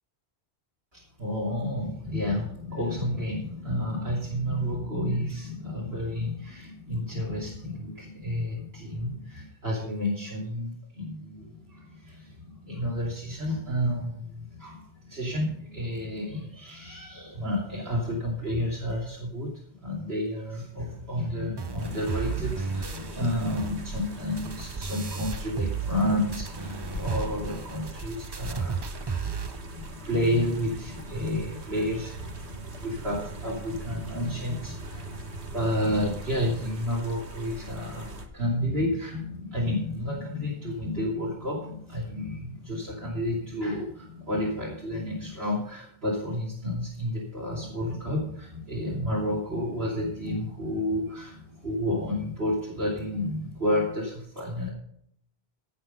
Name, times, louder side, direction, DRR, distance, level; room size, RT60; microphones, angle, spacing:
voice 1, 0.9-54.7, left 1 dB, 65° right, -6 dB, 3.3 m, -31 dB
sound 1, 21.6-26.0 26.3-29.6, right 6 dB, 35° right, 0.4 m, -34 dB
sound 2, 21.8-38.3, right 1 dB, 85° right, 1.9 m, -41 dB
sound 3, 23.7-24.3 25.2-25.7 26.8-27.3 28.0-28.7, left 2 dB, 65° left, 1.7 m, -40 dB
17.5 x 5.8 x 5.4 m, 0.66 s
omnidirectional pair, 1.1 m